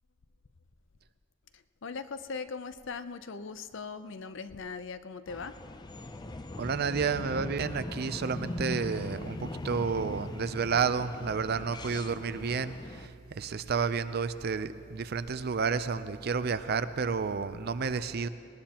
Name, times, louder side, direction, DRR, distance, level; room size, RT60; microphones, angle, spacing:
voice 1, 1.5-5.6, left 4 dB, 65° left, 11 dB, 0.6 m, -40 dB
sound 1, 5.3-13.1, left 2 dB, 20° left, 0.5 m, -40 dB
voice 2, 6.6-18.3, right 5 dB, 50° right, 12 dB, 0.5 m, -31 dB
20.0 x 19.0 x 2.9 m, 2.6 s
head